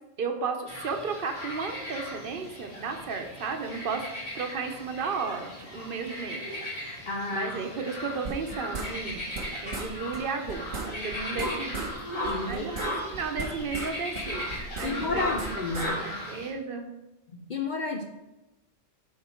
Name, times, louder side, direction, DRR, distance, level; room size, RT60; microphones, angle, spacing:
voice 1, 0.2-4.1 4.3-6.5 7.3-9.3 9.6-11.9 12.5-16.9, right 5 dB, 50° right, 5 dB, 0.9 m, -34 dB
sound 1, 0.7-16.5, left 1 dB, 80° left, 2.3 m, -37 dB
voice 2, 7.1-7.5 12.2-12.6 14.8-16.0 17.3-18.0, left 3 dB, 50° left, 4 dB, 0.6 m, -31 dB
sound 2, 8.3-9.5 9.7-9.9 10.1-10.2 10.5-11.9 12.2-13.9 14.2-15.9, right 3 dB, 90° right, 1.7 m, -36 dB
9.8 x 4.1 x 4.3 m, 1.0 s
omnidirectional pair, 1.3 m